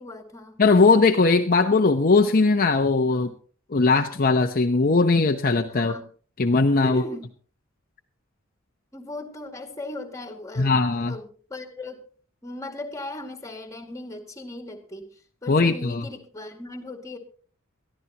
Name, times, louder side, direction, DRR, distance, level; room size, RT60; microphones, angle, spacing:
voice 1, 0.0-0.6 3.1-3.4 5.7-6.1 6.8-7.3 8.9-12.0 12.4-17.2, left 1 dB, 15° left, 4 dB, 2.1 m, -38 dB
voice 2, 0.6-3.3 3.7-5.9 6.4-7.0 10.6-11.2 15.5-16.0, left 3 dB, 45° left, 5 dB, 0.8 m, -19 dB
21.5 x 14.0 x 2.9 m, 0.42 s
head